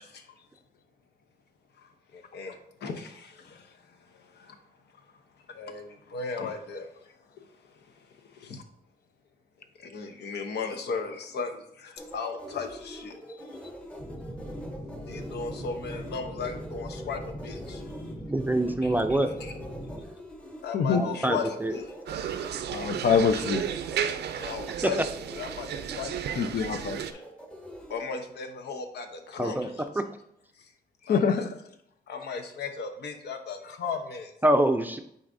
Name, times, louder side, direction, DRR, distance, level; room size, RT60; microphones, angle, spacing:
voice 1, 1.8-3.7 4.1-4.6 5.5-6.9 8.3-8.6 9.8-13.1 15.0-17.8 18.8-19.0 19.4-19.5 20.6-21.9 24.3-25.0 25.3-26.7 27.1-27.2 27.9-29.8 31.1-31.4 32.1-34.3, left 5 dB, 85° left, 5 dB, 0.9 m, -36 dB
sound 1, 12.0-28.0, equal, 5° left, 0.8 m, -45 dB
sound 2, 14.0-20.0, equal, 30° left, 1.6 m, -40 dB
voice 2, 18.3-19.3 20.9-21.7 29.4-29.7 34.4-35.0, right 1 dB, 10° right, 7 dB, 0.4 m, -25 dB
sound 3, 22.1-27.1, right 9 dB, 90° right, 0.5 m, -33 dB
voice 3, 22.7-23.6 24.2-24.3 26.4-27.0 31.1-31.6, left 6 dB, 60° left, 9 dB, 0.6 m, -25 dB
9.3 x 4.1 x 2.6 m, 0.73 s
wide cardioid pair, 130°, 17 cm